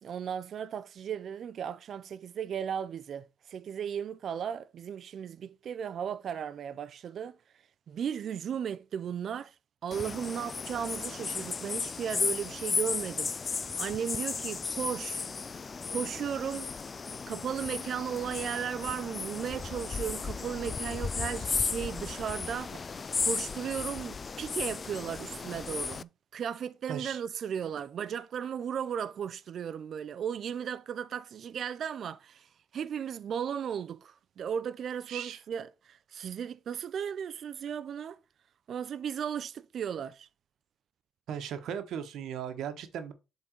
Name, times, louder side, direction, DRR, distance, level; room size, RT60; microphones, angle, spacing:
voice 1, 0.0-7.4 7.9-9.5 9.8-15.3 15.9-16.7 17.3-22.8 23.2-38.2 38.7-40.3, right 8 dB, 60° right, 0.4 m, -36 dB
sound 1, 9.9-26.0, left 5 dB, 35° left, 0.3 m, -35 dB
voice 2, 26.9-27.2 35.1-35.4 41.3-43.1, right 8 dB, 80° right, 1.1 m, -37 dB
7.7 x 3.8 x 4.5 m
cardioid pair, 90°, 0 cm